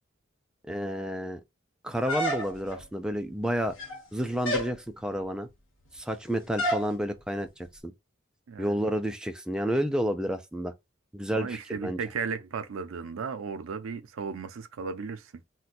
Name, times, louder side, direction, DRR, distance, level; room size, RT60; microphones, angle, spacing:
voice 1, 0.6-1.4 1.8-3.8 4.1-5.5 5.9-7.9 8.6-10.7 11.1-12.0, equal, 5° right, 0.3 m, -30 dB
sound 1, 2.1-2.8 3.6-4.1 4.4-4.8 6.6-6.9, equal, 80° left, 1.0 m, -29 dB
voice 2, 8.5-8.8 11.3-15.3, right 5 dB, 90° right, 0.5 m, -35 dB
2.5 x 2.2 x 3.9 m
head